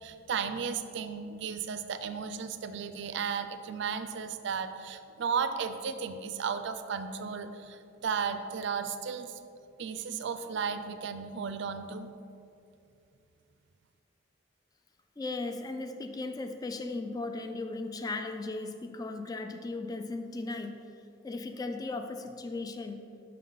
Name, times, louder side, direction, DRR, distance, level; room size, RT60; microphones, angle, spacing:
voice 1, 0.0-9.4 9.8-12.1, right 6 dB, 65° right, 9 dB, 0.4 m, -34 dB
voice 2, 15.2-20.8 21.2-23.0, left 3 dB, 20° left, 6 dB, 0.3 m, -37 dB
5.5 x 5.4 x 3.8 m, 2.5 s
head